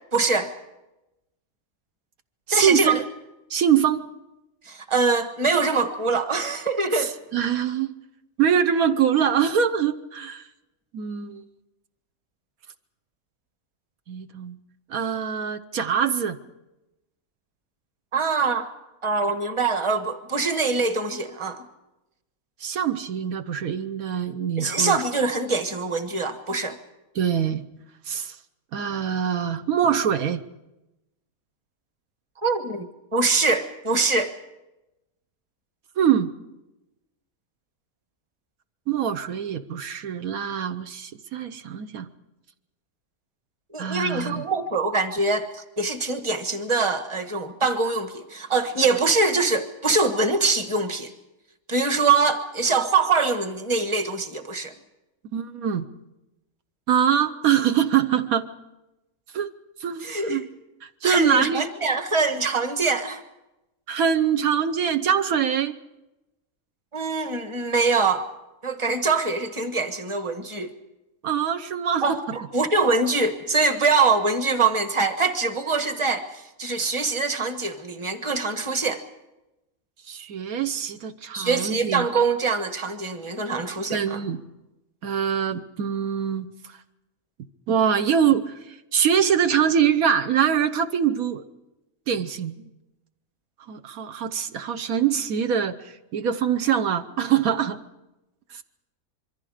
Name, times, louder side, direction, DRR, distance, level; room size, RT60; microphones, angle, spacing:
voice 1, 0.1-0.5 2.5-3.0 4.6-7.1 18.1-18.7 19.0-21.6 24.6-26.8 32.4-34.4 43.7-51.1 51.7-54.7 60.0-60.4 61.0-63.2 66.9-68.2 68.6-70.7 72.0-76.2 76.6-79.0 81.3-84.2, right 4 dB, 20° right, 8 dB, 1.4 m, -24 dB
voice 2, 2.5-3.0 3.5-4.0 6.9-7.9 8.4-10.4 10.9-11.4 14.1-14.6 14.9-16.4 22.6-25.0 27.1-27.6 28.1-28.4 28.7-30.4 36.0-36.3 38.9-42.1 43.8-44.4 55.3-55.9 56.9-58.5 59.3-59.5 59.8-60.5 60.8-61.7 63.9-65.7 71.2-72.4 80.1-82.1 83.9-84.4 85.0-86.5 87.7-91.4 92.1-92.7 93.7-97.8 98.5-98.6, right 8 dB, 75° right, 8 dB, 1.3 m, -24 dB
26.0 x 23.0 x 5.0 m, 0.97 s
omnidirectional pair, 1.5 m